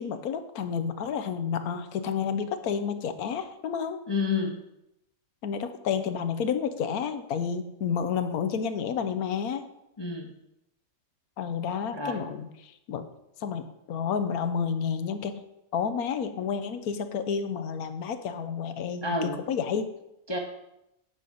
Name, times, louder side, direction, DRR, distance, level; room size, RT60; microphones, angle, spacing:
voice 1, 0.0-4.0 5.4-9.6 11.4-13.0 13.4-15.4 15.7-19.9, left 7 dB, 90° left, 9 dB, 1.3 m, -30 dB
voice 2, 4.1-4.6 10.0-10.3 11.9-12.2 19.0-19.4 20.3-20.4, left 4 dB, 20° left, 1 dB, 0.8 m, -29 dB
8.8 x 6.4 x 5.3 m, 0.86 s
omnidirectional pair, 1.5 m